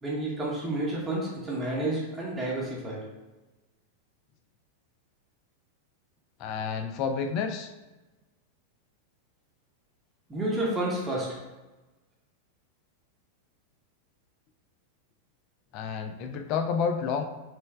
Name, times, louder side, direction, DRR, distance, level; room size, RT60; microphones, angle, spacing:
voice 1, 0.0-3.0 10.3-11.4, right 1 dB, 15° right, -4 dB, 0.9 m, -30 dB
voice 2, 6.4-7.7 15.7-17.2, left 6 dB, 40° left, 6 dB, 0.4 m, -30 dB
3.4 x 3.1 x 3.2 m, 1.1 s
figure-of-eight pair, 90°, 0 cm